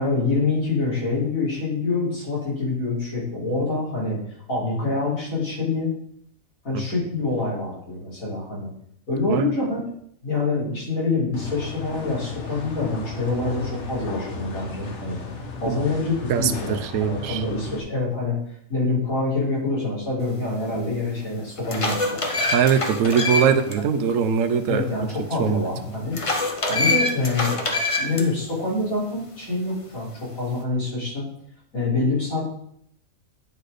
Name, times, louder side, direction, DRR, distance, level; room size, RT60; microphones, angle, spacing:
voice 1, 0.0-5.9 6.6-8.7 9.1-9.8 10.2-15.2 15.6-18.4 18.7-22.2 23.4-23.5 24.7-26.2 26.7-27.5 28.0-31.3 31.7-32.6, left 3 dB, 75° left, -6 dB, 3.9 m, -26 dB
sound 1, 11.3-17.8, left 3 dB, 55° left, 1.3 m, -35 dB
voice 2, 16.3-17.4 22.5-24.8 25.4-25.6, right 7 dB, 70° right, 10 dB, 1.0 m, -21 dB
sound 2, 20.7-20.8 21.4-23.7 24.1-24.2 26.1-28.2, left 2 dB, 30° left, 0.8 m, -25 dB
9.3 x 4.2 x 5.0 m, 0.69 s
omnidirectional pair, 1.5 m